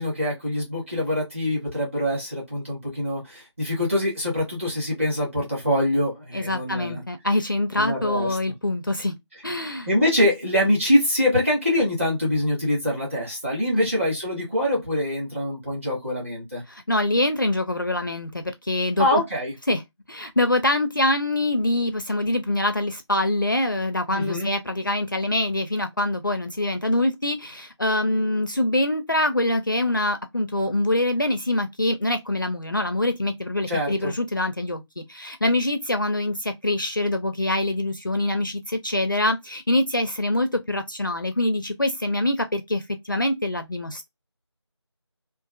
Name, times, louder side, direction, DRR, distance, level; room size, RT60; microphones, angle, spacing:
voice 1, 0.0-7.0 7.7-8.4 9.8-16.6 19.0-19.5 24.1-24.5 33.7-34.1, left 1 dB, 25° right, 1.5 m, -24 dB
voice 2, 6.3-9.2 9.4-9.9 13.7-13.9 16.7-19.2 19.7-19.8 20.1-44.1, left 1 dB, 45° left, 0.4 m, -24 dB
3.0 x 2.4 x 2.4 m
figure-of-eight pair, 175°, 15 cm